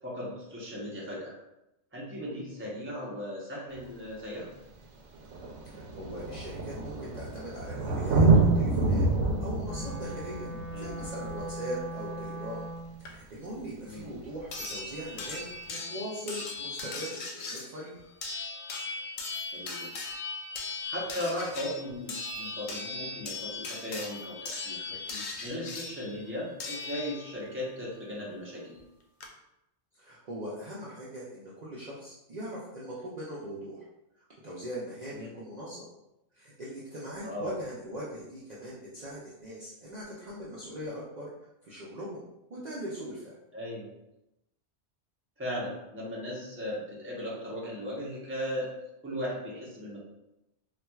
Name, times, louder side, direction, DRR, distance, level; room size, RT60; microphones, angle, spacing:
voice 1, 0.0-1.3 1.9-4.5 10.7-10.9 13.8-14.1 19.5-19.9 20.9-24.9 25.4-28.8 35.1-35.3 37.2-37.5 43.5-43.9 45.4-48.7 49.0-50.0, equal, 10° right, -6 dB, 0.8 m, -37 dB
Thunder, 3.8-3.9 4.8-4.9 5.1-12.5 14.1-14.2, right 3 dB, 80° right, 0.9 m, -27 dB
voice 2, 5.7-8.3 8.5-9.1 9.4-10.5 10.8-12.7 13.1-18.0 25.1-25.2 29.9-33.8 34.4-35.9 36.3-41.3 41.6-42.2 42.5-43.3, equal, 45° right, -7 dB, 0.6 m, -40 dB
Wind instrument woodwind instrument, 9.6-13.0, right 1 dB, 35° left, 1.3 m, -40 dB
sound 1, 13.1-13.2 14.5-27.5 28.8-28.9 29.2-29.3, left 3 dB, 75° left, 0.9 m, -38 dB
4.2 x 2.4 x 2.3 m, 0.89 s
omnidirectional pair, 1.2 m